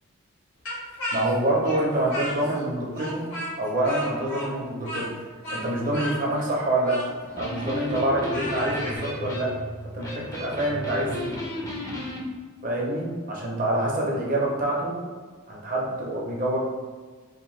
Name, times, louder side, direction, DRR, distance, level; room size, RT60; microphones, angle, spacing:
Speech, 0.6-2.7 2.9-9.0, equal, 75° left, 0.9 m, -34 dB
voice 1, 1.1-3.3 3.6-5.1 5.5-7.1 7.4-9.5 9.9-11.4 12.6-15.0 15.5-16.6, right 1 dB, 40° right, -3 dB, 0.6 m, -26 dB
Electric guitar, 7.2-12.2, left 1 dB, 15° left, 0.4 m, -34 dB
2.8 x 2.1 x 3.1 m, 1.5 s
head